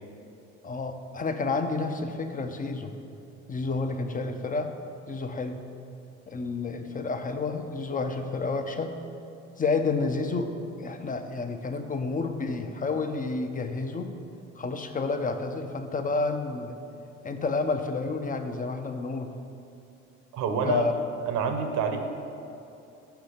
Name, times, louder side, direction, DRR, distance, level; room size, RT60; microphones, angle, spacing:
voice 1, 0.6-2.9 3.5-4.7 5.1-5.6 6.3-8.9 9.6-10.5 10.8-14.1 14.6-16.8 17.2-19.3 20.6-20.9, left 3 dB, 25° left, 7 dB, 0.7 m, -30 dB
voice 2, 20.3-20.8 21.3-22.0, right 6 dB, 65° right, 5 dB, 1.0 m, -26 dB
5.8 x 5.5 x 6.8 m, 2.7 s
hypercardioid pair, 75°, 34 cm